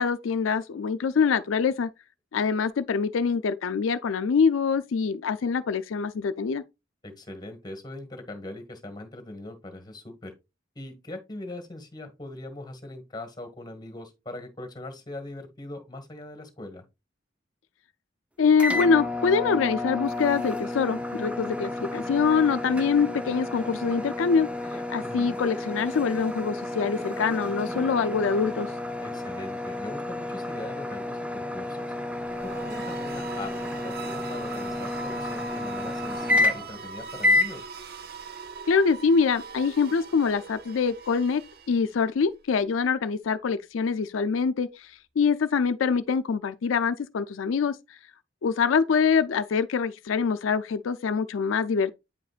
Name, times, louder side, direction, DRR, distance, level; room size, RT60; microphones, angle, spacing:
voice 1, 0.0-1.9 2.3-6.6 18.4-24.5 24.9-28.7 38.7-41.4 41.7-44.7 45.2-47.8 48.4-51.9, left 5 dB, 90° left, 0.4 m, -24 dB
voice 2, 7.0-10.3 10.7-16.8 25.0-25.4 29.0-31.9 32.5-37.7, left 1 dB, 20° left, 1.4 m, -41 dB
sound 1, 18.6-36.8 37.2-37.5, left 2 dB, 5° right, 0.6 m, -30 dB
sound 2, 32.2-42.1, right 5 dB, 55° right, 0.7 m, -41 dB
9.0 x 5.0 x 2.4 m
head